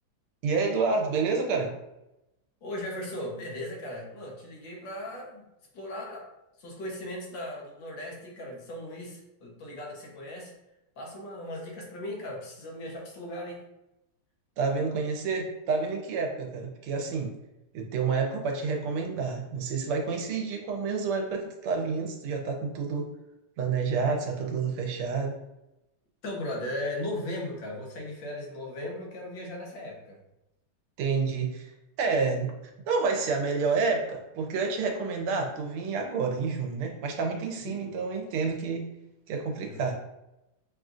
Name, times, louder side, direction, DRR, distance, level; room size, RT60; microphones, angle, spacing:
voice 1, 0.4-1.7 14.6-17.3 17.7-23.1 23.6-25.4 31.0-31.7 32.0-32.5 32.9-38.8 39.3-39.9, right 4 dB, 90° right, 2 dB, 1.6 m, -29 dB
voice 2, 2.6-5.4 5.7-6.3 6.6-10.5 11.0-13.6 24.0-24.1 26.2-30.2 37.6-38.0 39.6-39.8, left 1 dB, 65° left, -2 dB, 1.5 m, -37 dB
5.8 x 2.4 x 2.5 m, 0.90 s
omnidirectional pair, 2.3 m